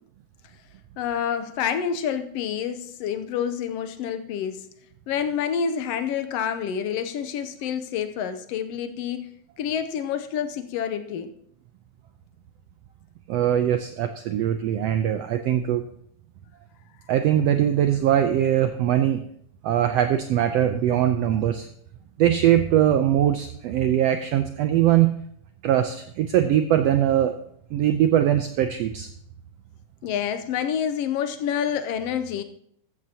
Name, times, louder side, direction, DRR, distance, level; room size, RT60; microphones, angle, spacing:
voice 1, 1.0-4.7 5.1-11.3 30.0-32.4, left 8 dB, 80° left, 9 dB, 1.4 m, -28 dB
voice 2, 13.3-15.8 17.1-19.2 19.6-21.7 22.2-25.2 25.6-27.3 27.7-29.1, right 11 dB, 85° right, 8 dB, 1.4 m, -21 dB
14.0 x 13.5 x 2.8 m, 0.67 s
omnidirectional pair, 3.6 m